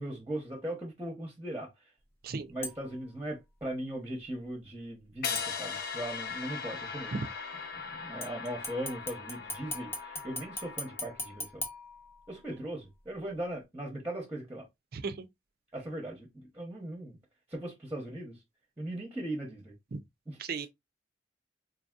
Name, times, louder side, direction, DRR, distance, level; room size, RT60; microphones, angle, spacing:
voice 1, 0.0-1.7 2.5-7.1 7.8-11.6 12.3-14.7 15.7-17.2 17.5-18.4 18.8-19.7 20.3-20.7, right 1 dB, 10° right, 0.8 m, -39 dB
sound 1, 2.6-3.1 5.3-6.1 8.2-12.6 13.0-13.1, left 2 dB, 15° left, 0.6 m, -41 dB
sound 2, 5.2-11.4, left 6 dB, 55° left, 0.7 m, -39 dB
voice 2, 14.9-15.3 19.9-20.0 20.4-20.7, right 4 dB, 55° right, 0.5 m, -35 dB
3.9 x 2.7 x 2.4 m
head